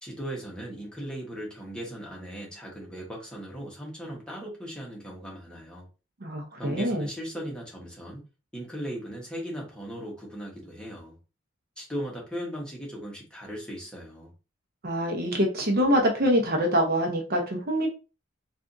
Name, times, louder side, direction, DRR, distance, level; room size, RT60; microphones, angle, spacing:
voice 1, 0.0-5.9 6.6-8.2 8.5-11.2 11.8-14.3, equal, 5° left, 1.1 m, -38 dB
voice 2, 6.2-7.1 14.8-17.9, equal, 55° right, 0.8 m, -25 dB
3.5 x 2.5 x 2.6 m
head